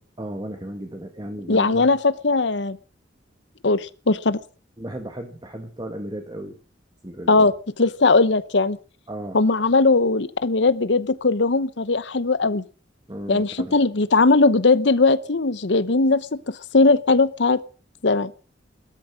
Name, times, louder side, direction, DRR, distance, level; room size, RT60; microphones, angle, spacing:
voice 1, 0.2-1.9 4.8-6.6 7.0-7.5 9.1-9.4 13.1-13.8, right 1 dB, 25° right, 5 dB, 1.9 m, -35 dB
voice 2, 1.5-2.8 3.6-4.4 7.3-7.5 7.8-8.8 9.3-12.6 13.3-17.6 18.0-18.3, left 3 dB, 75° left, 16 dB, 0.9 m, -19 dB
13.5 x 13.5 x 7.5 m, 0.39 s
head